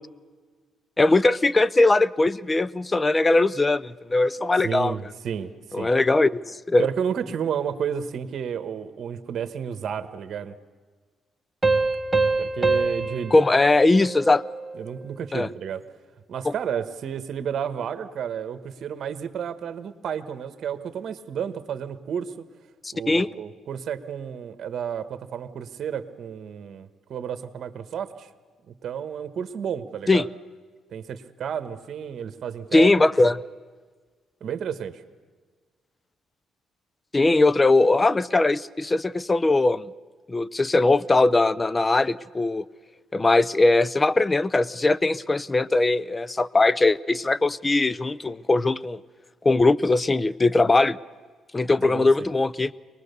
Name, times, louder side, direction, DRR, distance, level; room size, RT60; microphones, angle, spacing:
voice 1, 1.0-4.9 5.7-6.9 13.3-14.4 15.3-15.5 16.5-16.6 22.8-23.3 30.1-30.2 32.7-33.4 37.1-39.9 40.3-42.6 43.1-49.0 49.4-51.0 51.5-52.7, left 2 dB, 20° left, 20 dB, 0.5 m, -20 dB
voice 2, 4.6-5.9 6.8-10.5 12.4-13.4 14.7-15.8 16.3-22.3 22.9-28.3 28.7-30.3 30.9-32.9 33.2-33.3 34.4-35.0 51.8-52.3, right 8 dB, 60° right, 10 dB, 1.3 m, -31 dB
Piano, 11.6-14.9, right 3 dB, 20° right, 1.5 m, -25 dB
23.5 x 19.5 x 6.8 m, 1.5 s
cardioid pair, 90°, 0 cm